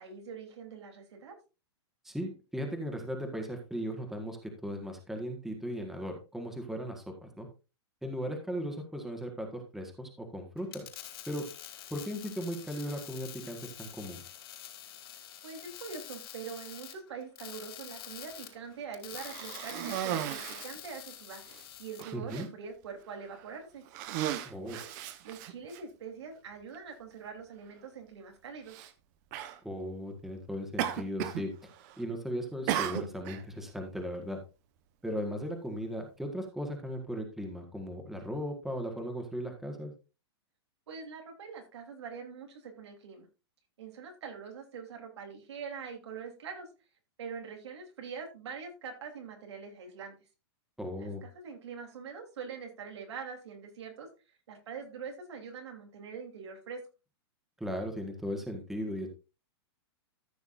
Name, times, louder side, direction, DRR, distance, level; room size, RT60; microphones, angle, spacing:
voice 1, 0.0-1.4 15.4-21.4 21.8-23.9 24.5-24.9 25.2-28.8 40.9-43.3 43.8-46.7 47.2-50.1 51.0-54.1 54.5-56.8, right 6 dB, 80° right, 2 dB, 3.5 m, -44 dB
voice 2, 2.0-7.5 8.0-10.9 11.3-11.4 11.9-14.2 22.1-22.5 24.4-24.8 29.6-31.5 32.0-34.4 35.0-39.9 50.8-51.2 57.6-59.1, equal, ahead, 3 dB, 1.7 m, -37 dB
sound 1, 10.6-22.0, left 11 dB, 60° left, 4.0 m, -47 dB
Cough, 19.1-20.8 21.5-21.6 22.0-22.5 23.2-23.5 23.9-25.8 26.7-26.8 28.7-28.9 29.3-29.6 30.8-31.5 31.7-32.1 32.7-33.4, right 11 dB, 40° right, 1.2 m, -35 dB
14.0 x 6.9 x 2.6 m, 0.30 s
hypercardioid pair, 150°, 14 cm